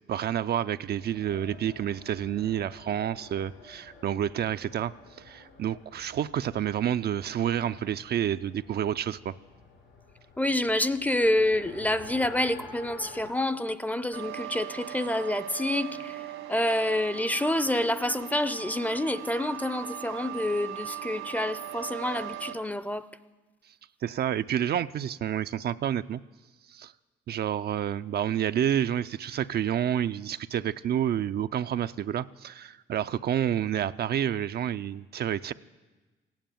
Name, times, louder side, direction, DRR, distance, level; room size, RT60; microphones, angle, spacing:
voice 1, 0.1-4.9 5.2-9.3 24.0-26.2 26.7-26.9 27.3-35.5, right 10 dB, 55° right, 0.4 m, -29 dB
Race car auto racing, 0.9-13.3, left 3 dB, 70° left, 3.6 m, -50 dB
voice 2, 10.4-23.1, left 1 dB, 10° left, 0.5 m, -28 dB
sound 1, 14.1-22.5, right 13 dB, 80° right, 1.4 m, -40 dB
16.0 x 9.3 x 9.0 m
cardioid pair, 90°, 20 cm